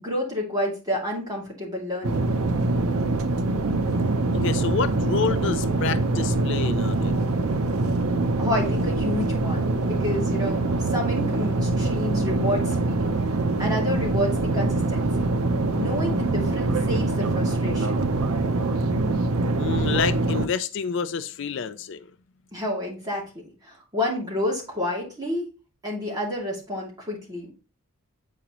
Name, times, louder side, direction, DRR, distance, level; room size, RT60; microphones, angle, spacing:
voice 1, 0.0-2.3 8.4-10.6 10.9-13.0 13.6-15.3 15.7-18.0 22.5-23.2 23.6-25.5 25.8-27.5, left 1 dB, 20° right, 2.5 m, -29 dB
sound 1, 2.0-20.5, right 2 dB, 85° right, 0.6 m, -24 dB
voice 2, 4.3-7.1 19.6-22.0, left 6 dB, 55° left, 0.4 m, -28 dB
8.3 x 4.9 x 3.0 m
head